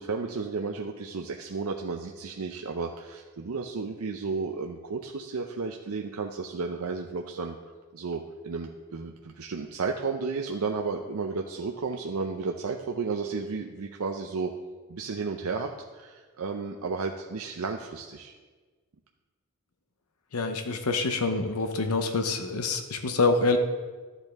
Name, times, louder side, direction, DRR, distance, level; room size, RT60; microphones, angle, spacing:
voice 1, 0.0-7.6 7.9-14.5 14.9-18.3, right 4 dB, 80° right, 3 dB, 0.6 m, -33 dB
voice 2, 20.3-23.6, left 3 dB, 85° left, 7 dB, 0.7 m, -26 dB
12.5 x 8.0 x 3.5 m, 1.4 s
head